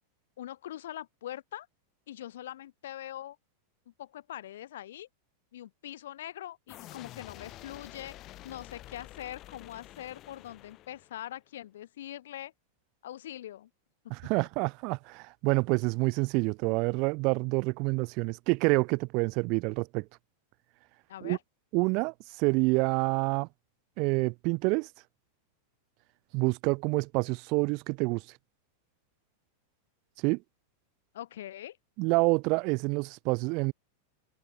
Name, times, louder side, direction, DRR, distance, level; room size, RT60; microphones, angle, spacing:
voice 1, 0.4-1.7 2.1-3.4 4.0-5.1 5.5-8.2 8.4-12.5 13.0-13.7 21.1-21.4 31.1-31.8, left 12 dB, 80° left, 4.5 m, -42 dB
sound 1, 6.7-11.3, left 15 dB, 30° left, 7.6 m, -49 dB
voice 2, 14.1-20.0 21.2-21.4 21.7-23.5 24.0-24.9 26.3-28.2 30.2-30.4 32.0-33.7, right 29 dB, 40° right, 0.6 m, -27 dB
supercardioid pair, 160°, 0 cm